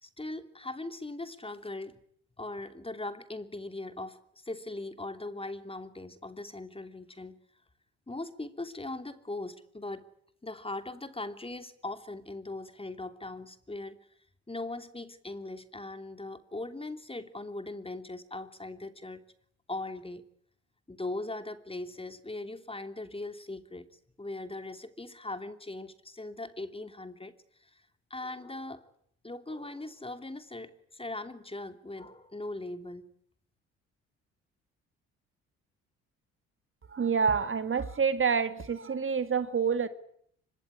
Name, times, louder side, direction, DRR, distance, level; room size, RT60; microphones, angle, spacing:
voice 1, 0.0-2.0 2.4-7.4 8.1-10.1 10.4-14.0 14.5-19.2 19.7-20.3 20.9-23.9 24.2-27.3 27.6-27.8 28.1-28.9 29.2-33.1, left 2 dB, 15° left, 3.0 m, -40 dB
voice 2, 36.9-39.9, right 6 dB, 40° right, 2.2 m, -27 dB
25.0 x 22.5 x 9.9 m
hypercardioid pair, 55°, 32 cm